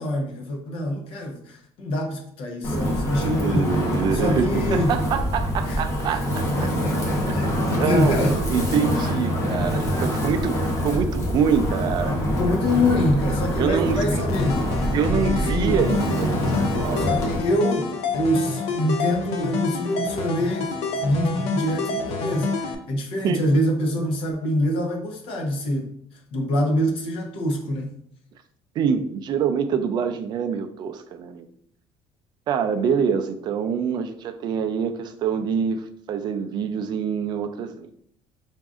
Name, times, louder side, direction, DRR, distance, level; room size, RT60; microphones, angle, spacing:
voice 1, 0.0-3.7 4.1-5.0 5.6-6.2 6.6-8.4 12.3-14.6 15.4-15.8 17.0-20.7 21.0-27.9, left 1 dB, 60° left, 2 dB, 0.8 m, -25 dB
Wind, 2.6-17.4, equal, 25° left, 0.8 m, -25 dB
voice 2, 3.2-6.7 7.3-10.6 10.8-12.2 13.6-14.2 14.9-17.1 23.2-23.4 28.8-31.5 32.5-37.9, right 7 dB, 40° right, 7 dB, 0.4 m, -25 dB
sound 1, 14.3-22.7, left 4 dB, 85° left, 0.5 m, -28 dB
4.8 x 2.5 x 2.4 m, 0.68 s
cardioid pair, 160°, 11 cm